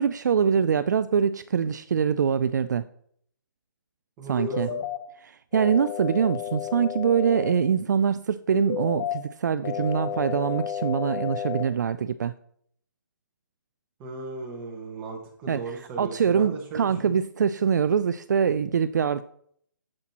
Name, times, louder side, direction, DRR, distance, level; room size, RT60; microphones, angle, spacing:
voice 1, 0.0-2.9 4.3-4.7 5.2-12.3 15.5-19.2, right 7 dB, 55° right, 13 dB, 0.4 m, -24 dB
voice 2, 4.2-4.8 14.0-17.1, right 3 dB, 15° right, 0 dB, 1.5 m, -37 dB
sound 1, 4.4-5.0 5.5-7.5 8.5-9.1 9.6-11.6, left 9 dB, 30° left, 0.8 m, -31 dB
9.8 x 7.5 x 2.9 m, 0.66 s
hypercardioid pair, 170°, 11 cm